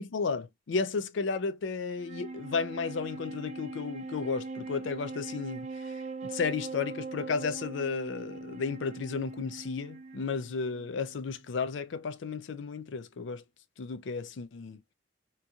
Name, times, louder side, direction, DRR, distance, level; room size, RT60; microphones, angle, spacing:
voice 1, 0.0-6.0 6.2-13.4 13.8-14.8, left 5 dB, 75° left, 0.4 m, -33 dB
Wind instrument woodwind instrument, 1.9-11.4, right 3 dB, 35° right, 0.4 m, -41 dB
2.9 x 2.7 x 2.3 m
head